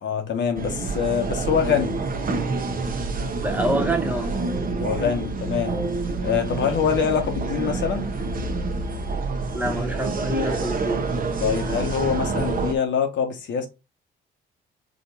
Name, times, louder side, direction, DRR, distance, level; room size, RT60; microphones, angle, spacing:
voice 1, 0.0-2.0 4.8-5.8 6.2-8.1 11.4-13.7, left 7 dB, 70° left, 1.1 m, -24 dB
sound 1, 0.6-12.7, right 3 dB, 45° right, 0.9 m, -27 dB
voice 2, 3.4-4.3 9.5-11.0, right 1 dB, 10° right, 0.7 m, -26 dB
5.0 x 2.7 x 2.8 m
cardioid pair, 90°, 20 cm